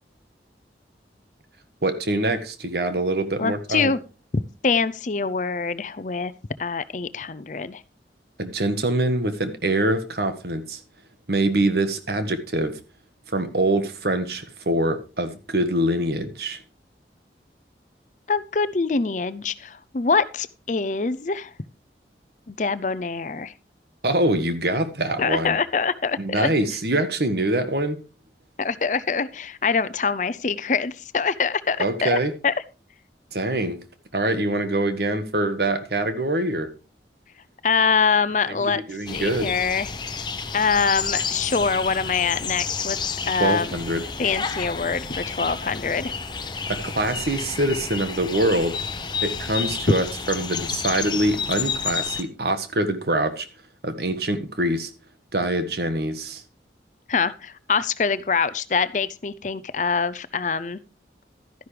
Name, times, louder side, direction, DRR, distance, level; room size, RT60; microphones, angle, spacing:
voice 1, 1.8-3.9 8.4-10.8 11.3-12.8 13.3-16.6 24.0-25.6 26.2-28.0 31.8-32.3 33.3-33.8 34.1-36.7 38.5-39.5 43.4-44.1 46.7-48.8 49.2-53.5 53.8-54.9 55.3-56.4, right 1 dB, 65° right, 1.5 m, -24 dB
voice 2, 3.4-4.0 4.6-6.3 6.6-7.8 18.3-21.5 22.5-23.5 25.2-26.5 28.6-32.5 37.6-38.8 39.1-39.9 40.5-43.7 44.2-46.1 57.1-60.8, left 5 dB, 45° left, 0.6 m, -24 dB
sound 1, 39.1-52.2, left 5 dB, 25° left, 0.9 m, -30 dB
12.5 x 10.5 x 3.3 m
head